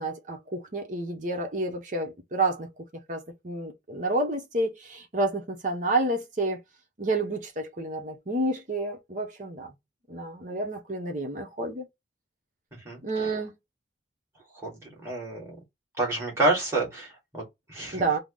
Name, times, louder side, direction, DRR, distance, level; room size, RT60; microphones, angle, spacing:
voice 1, 0.0-2.7 3.1-6.6 7.0-9.7 10.1-11.8 13.0-13.5 17.9-18.2, right 2 dB, 45° right, 0.8 m, -29 dB
voice 2, 14.6-15.5 16.0-18.2, right 2 dB, 15° right, 1.9 m, -29 dB
3.8 x 2.0 x 3.7 m
head